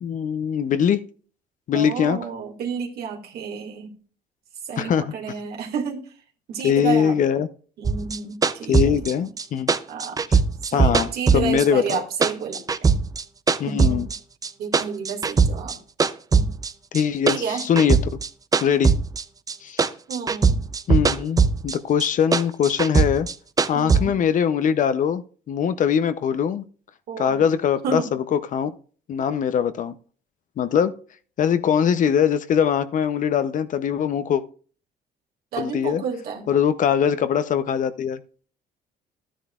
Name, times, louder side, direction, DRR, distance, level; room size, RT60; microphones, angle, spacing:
voice 1, 0.0-1.0 1.7-2.2 4.8-5.1 6.6-7.5 8.7-9.7 10.3-10.4 10.7-12.0 13.6-14.1 16.9-18.2 18.6-18.9 19.6-19.9 20.9-23.3 23.7-26.6 27.2-28.7 29.1-29.9 30.6-30.9 31.4-34.4 35.6-36.0 36.5-38.2, left 8 dB, 50° left, 12 dB, 0.7 m, -22 dB
voice 2, 1.7-3.9 4.6-6.1 6.5-7.2 7.8-9.3 9.9-10.2 10.7-13.0 13.7-14.1 14.6-15.8 16.3-16.5 17.3-17.7 20.1-20.6 23.7-24.2 27.1-27.4 27.8-28.1 35.5-36.5, right 6 dB, 70° right, 1 dB, 2.2 m, -31 dB
sound 1, 7.8-12.0 12.2-14.2 14.4-15.7 16.0-19.5 19.8-21.7 22.0-24.0, right 5 dB, 20° right, 0.5 m, -20 dB
12.5 x 10.0 x 2.4 m, 0.41 s
cardioid pair, 110°, 17 cm